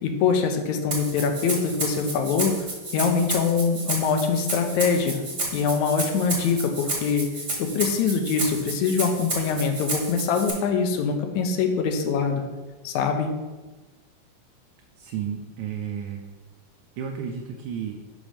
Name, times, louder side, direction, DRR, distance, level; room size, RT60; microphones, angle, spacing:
voice 1, 0.0-2.6 2.9-5.2 5.5-7.3 7.6-12.4 12.8-13.3, left 5 dB, 80° left, 5 dB, 1.9 m, -23 dB
Rattle (instrument), 0.9-10.5, right 2 dB, 35° right, 1.2 m, -31 dB
voice 2, 15.0-16.2 17.0-18.0, right 8 dB, 80° right, 2 dB, 2.0 m, -32 dB
6.2 x 5.5 x 5.0 m, 1.2 s
omnidirectional pair, 3.5 m